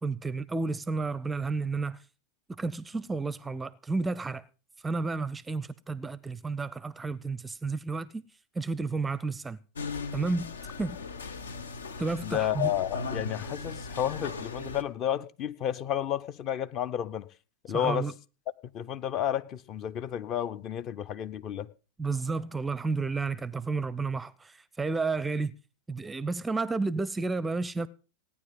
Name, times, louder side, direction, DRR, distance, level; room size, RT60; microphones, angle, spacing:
voice 1, 0.0-2.0 2.5-4.4 4.8-8.2 8.5-9.6 10.1-10.5 10.8-11.0 12.0-12.7 17.7-18.1 22.0-25.5 25.9-27.9, right 3 dB, 10° right, 0.6 m, -31 dB
sound 1, 9.8-14.8, left 4 dB, 70° left, 1.1 m, -38 dB
voice 2, 12.2-17.3 17.7-18.1 18.7-21.7, left 10 dB, 35° left, 0.8 m, -31 dB
17.5 x 9.7 x 5.4 m
figure-of-eight pair, 90°, 0 cm